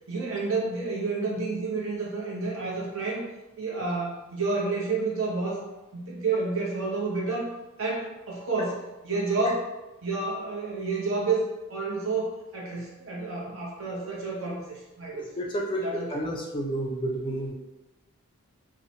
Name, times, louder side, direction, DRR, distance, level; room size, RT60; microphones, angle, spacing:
voice 1, 0.1-3.2 3.6-5.6 5.9-9.7 10.0-11.4 11.7-15.3 15.8-16.1, right 3 dB, 60° right, -4 dB, 0.8 m, -30 dB
voice 2, 15.1-17.5, right 1 dB, 20° left, 0 dB, 0.3 m, -31 dB
2.7 x 2.1 x 2.7 m, 1.0 s
head